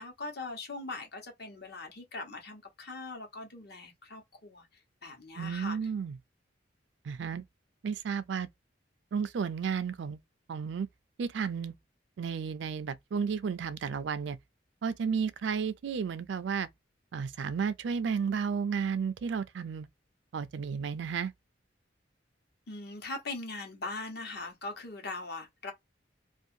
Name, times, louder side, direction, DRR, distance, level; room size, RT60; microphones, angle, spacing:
voice 1, 0.0-4.7 5.0-5.9 22.7-25.7, left 3 dB, 55° left, 1.0 m, -41 dB
voice 2, 5.4-6.2 7.0-7.4 7.8-8.5 9.1-10.2 10.5-10.9 11.2-11.7 12.2-14.4 14.8-16.7 17.1-19.9 20.3-21.3, right 6 dB, 65° right, 0.4 m, -32 dB
2.5 x 2.4 x 2.7 m
head